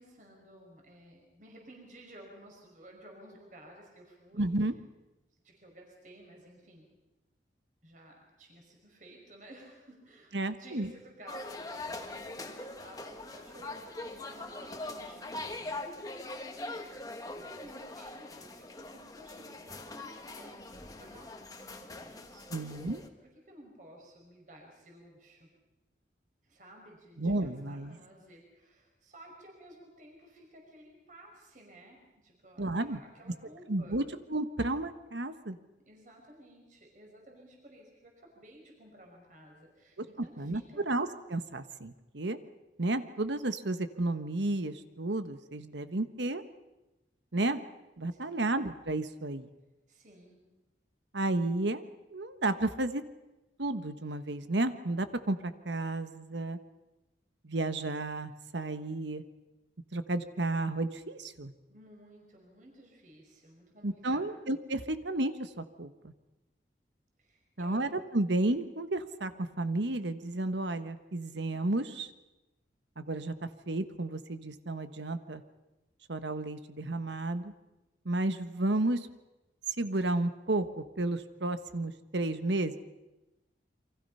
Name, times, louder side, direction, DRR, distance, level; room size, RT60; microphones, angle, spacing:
voice 1, 0.0-4.5 5.4-6.9 7.8-15.9 17.2-22.6 23.2-25.5 26.4-34.0 35.9-40.8 48.1-48.4 49.9-50.4 61.7-64.3 67.2-67.8, right 1 dB, 45° right, 0 dB, 5.5 m, -54 dB
voice 2, 4.4-4.7 10.3-10.9 22.5-23.0 27.2-27.9 32.6-33.0 33.7-34.0 34.3-35.6 40.0-42.4 42.8-46.4 47.3-47.6 48.0-49.5 51.1-51.8 52.1-53.0 53.6-56.6 57.4-59.2 59.9-61.5 63.8-66.1 67.6-72.1 73.0-75.4 76.1-77.5 78.0-79.1 79.8-82.8, right 2 dB, 75° right, 10 dB, 1.3 m, -32 dB
sound 1, 11.3-23.1, left 2 dB, 20° left, 1.6 m, -42 dB
29.0 x 24.5 x 5.7 m, 1.0 s
head